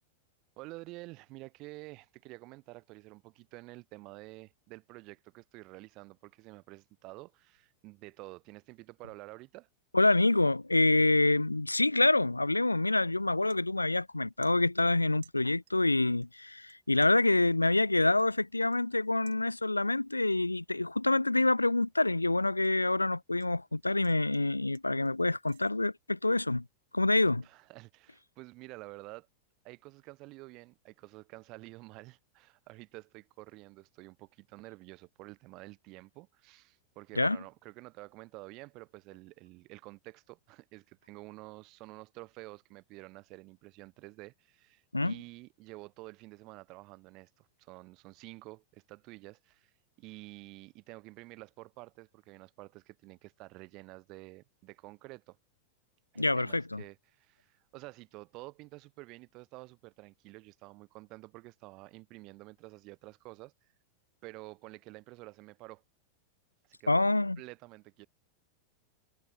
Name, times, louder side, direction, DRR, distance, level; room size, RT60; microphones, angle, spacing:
voice 1, 0.6-9.7 27.4-29.3 29.6-49.7 50.0-55.4 56.1-63.5 64.2-65.8 66.7-68.1, right 22 dB, 40° right, 6.9 m, -50 dB
voice 2, 9.9-26.6 26.9-27.4 37.2-37.4 44.9-45.1 56.2-56.8 66.9-67.4, left 2 dB, 85° left, 0.5 m, -27 dB
sound 1, 13.5-14.2 14.4-15.9 16.2-16.8 17.0-19.9 20.3-20.7 21.1-23.5 23.8-25.7, right 12 dB, 60° right, 7.5 m, -63 dB
figure-of-eight pair, 90°, 0 cm